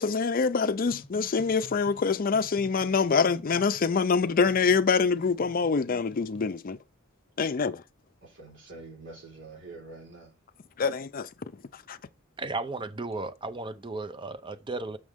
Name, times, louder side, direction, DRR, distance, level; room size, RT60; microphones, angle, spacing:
voice 1, 0.0-6.8 7.4-7.8 10.8-11.3 11.9-12.0, left 5 dB, 45° left, 0.5 m, -25 dB
sound 1, 0.9-6.5, left 2 dB, 25° left, 0.9 m, -50 dB
voice 2, 8.2-10.3, right 3 dB, 65° right, 4.3 m, -46 dB
voice 3, 12.4-15.0, right 3 dB, 25° right, 0.6 m, -34 dB
6.4 x 6.2 x 3.5 m
head